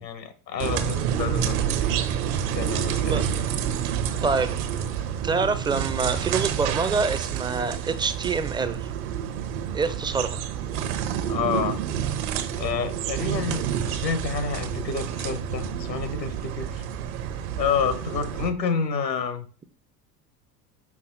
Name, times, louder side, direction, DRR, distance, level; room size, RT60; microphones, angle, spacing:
voice 1, 0.0-1.8 2.5-3.3 11.3-11.8 12.6-16.8 17.6-19.5, left 6 dB, 80° left, 1.1 m, -29 dB
sound 1, 0.6-18.5, right 9 dB, 55° right, 0.9 m, -28 dB
voice 2, 4.2-4.5 5.2-8.9 9.7-10.4, right 4 dB, 10° right, 0.4 m, -26 dB
6.0 x 5.5 x 3.8 m
figure-of-eight pair, 70°, 50 cm